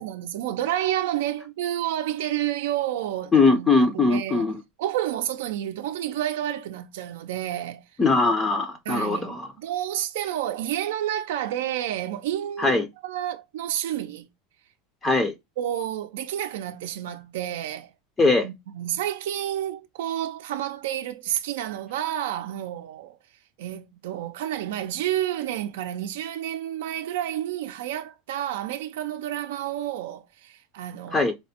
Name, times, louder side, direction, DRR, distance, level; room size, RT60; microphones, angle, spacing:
voice 1, 0.0-4.5 4.8-7.8 8.9-12.8 13.0-14.3 15.6-17.9 18.4-23.2 23.6-31.3, right 12 dB, 90° right, 0.4 m, -30 dB
voice 2, 3.3-4.6 8.0-9.5 12.6-12.9 15.0-15.3 18.2-18.5 31.1-31.3, left 3 dB, 15° left, 0.4 m, -21 dB
4.2 x 2.1 x 2.8 m
supercardioid pair, 155°, 0 cm